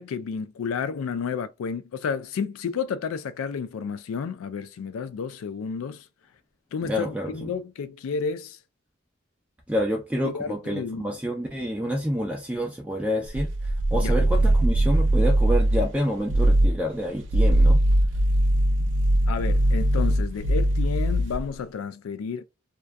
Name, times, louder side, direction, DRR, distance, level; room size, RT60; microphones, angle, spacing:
voice 1, 0.0-6.0 6.7-8.6 10.2-11.1 13.9-14.2 19.3-22.4, left 6 dB, 85° left, 0.3 m, -31 dB
voice 2, 6.8-7.5 9.7-13.5 13.9-17.8, equal, 5° right, 0.3 m, -28 dB
sound 1, 13.3-15.9 16.3-16.8 17.2-21.5, right 1 dB, 65° right, 0.5 m, -21 dB
2.5 x 2.2 x 2.2 m
head